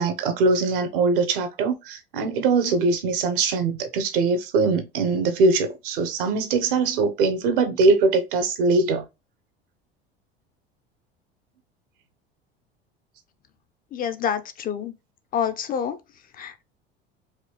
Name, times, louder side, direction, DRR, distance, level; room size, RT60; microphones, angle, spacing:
voice 1, 0.0-9.0, right 3 dB, 60° right, 1.0 m, -22 dB
voice 2, 13.9-14.9 15.3-16.0 16.4-16.6, left 8 dB, 30° left, 0.5 m, -27 dB
4.8 x 2.9 x 3.1 m
figure-of-eight pair, 70°, 31 cm